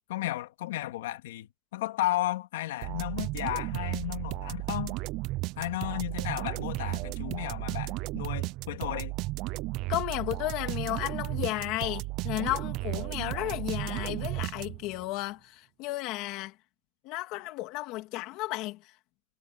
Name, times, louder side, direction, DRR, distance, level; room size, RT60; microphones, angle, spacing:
voice 1, 0.1-5.0 5.6-9.1, left 15 dB, 70° left, 2.7 m, -34 dB
sound 1, 2.8-15.0, right 20 dB, 40° right, 0.5 m, -34 dB
voice 2, 9.9-16.5 17.0-18.9, left 18 dB, 40° left, 2.5 m, -33 dB
supercardioid pair, 165°, 0 cm